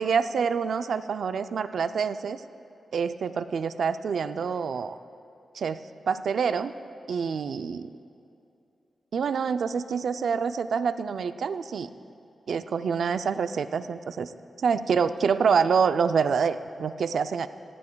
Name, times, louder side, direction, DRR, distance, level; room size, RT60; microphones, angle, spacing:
voice 1, 0.0-2.4 2.9-5.0 5.5-6.7 7.1-7.9 9.1-11.9 12.5-14.3 14.6-17.5, right 6 dB, 70° right, 11 dB, 0.4 m, -26 dB
18.0 x 14.0 x 2.3 m, 2.7 s
wide cardioid pair, 135°, 0 cm